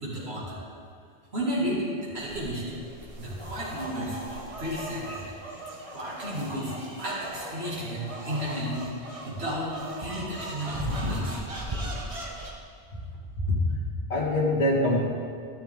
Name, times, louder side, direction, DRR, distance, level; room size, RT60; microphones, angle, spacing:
voice 1, 0.0-0.6 1.3-2.6 3.2-4.2 4.6-5.3 5.9-8.9 9.2-11.4, equal, 65° right, -7 dB, 2.4 m, -32 dB
sound 1, 2.2-12.5, right 1 dB, 30° right, 1.1 m, -37 dB
voice 2, 13.4-13.8 14.1-15.0, left 1 dB, 75° left, -4 dB, 2.0 m, -24 dB
12.0 x 10.5 x 3.6 m, 2.3 s
omnidirectional pair, 1.1 m